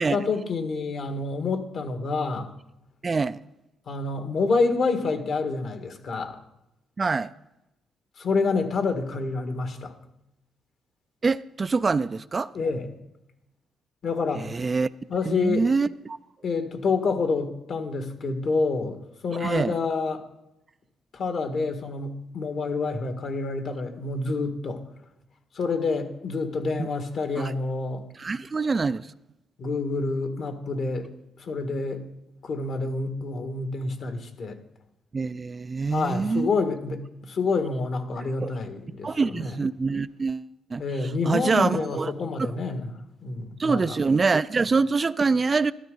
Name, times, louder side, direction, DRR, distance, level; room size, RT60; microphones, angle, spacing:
voice 1, 0.0-2.5 3.9-6.4 8.2-9.9 12.5-12.9 14.0-14.5 15.1-15.7 16.4-19.0 19.2-20.2 21.1-24.8 25.5-28.1 29.6-31.1 31.4-32.0 32.4-34.6 35.9-39.6 40.8-42.9 43.2-43.9, left 4 dB, 60° left, 1.7 m, -28 dB
voice 2, 3.0-3.4 7.0-7.3 11.2-12.5 14.4-14.9 15.2-16.2 19.4-19.7 26.8-26.9 27.4-27.5 28.2-29.1 35.1-36.5 38.4-38.5 39.0-42.1 42.4-42.5 43.6-45.7, right 4 dB, 30° right, 0.3 m, -25 dB
13.5 x 13.0 x 3.9 m
cardioid pair, 90°, 0 cm